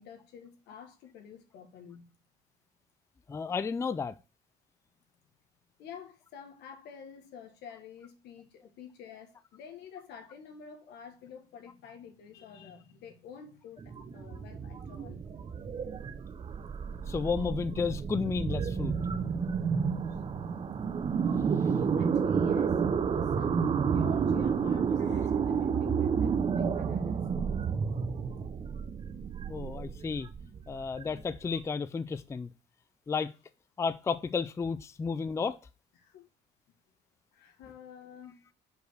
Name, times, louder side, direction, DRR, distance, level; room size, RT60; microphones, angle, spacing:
voice 1, 0.0-2.1 5.8-15.2 21.6-27.6 36.0-36.3 37.3-38.4, left 7 dB, 80° left, 1.5 m, -49 dB
voice 2, 3.3-4.2 17.1-18.9 29.5-30.3 30.7-32.5 33.1-33.3 33.8-35.6, left 5 dB, 15° left, 0.4 m, -32 dB
sound 1, 13.8-31.6, right 6 dB, 35° right, 0.7 m, -30 dB
5.3 x 4.7 x 6.3 m
cardioid pair, 110°, 17 cm